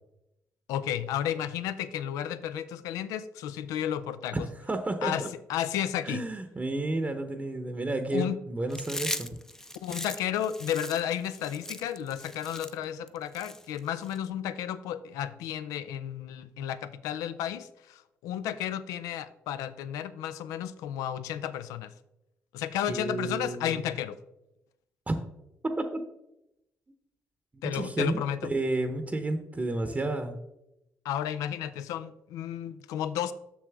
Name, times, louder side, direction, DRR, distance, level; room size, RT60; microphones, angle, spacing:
voice 1, 0.7-4.5 5.0-5.2 5.5-6.2 8.1-8.4 9.8-21.9 22.5-24.2 27.6-28.5 31.0-33.3, left 10 dB, 85° left, 14 dB, 0.4 m, -32 dB
voice 2, 4.3-5.3 6.0-9.3 22.9-23.8 25.1-25.2 25.6-26.0 27.7-30.4, right 2 dB, 25° right, 7 dB, 0.8 m, -31 dB
Chewing mastication, 8.7-14.2, left 1 dB, 10° left, 0.5 m, -39 dB
6.9 x 6.4 x 3.5 m, 0.88 s
supercardioid pair, 60°, 6 cm